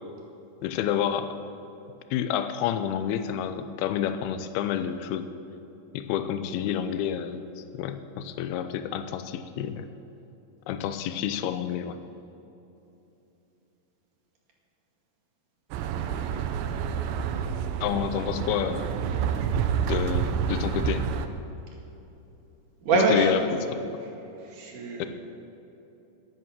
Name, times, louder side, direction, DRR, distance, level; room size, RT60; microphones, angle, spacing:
voice 1, 0.6-1.4 2.1-5.3 5.9-7.4 7.7-9.9 10.7-12.0 17.8-19.0 19.9-21.0 23.1-23.4 23.7-23.8 25.0-25.1, left 10 dB, 80° left, 9 dB, 2.4 m, -29 dB
sound 1, 15.7-21.3, right 7 dB, 90° right, 3.0 m, -28 dB
voice 2, 22.8-23.8 24.4-25.1, right 2 dB, 55° right, -1 dB, 3.3 m, -25 dB
12.5 x 11.0 x 7.5 m, 2.9 s
omnidirectional pair, 5.0 m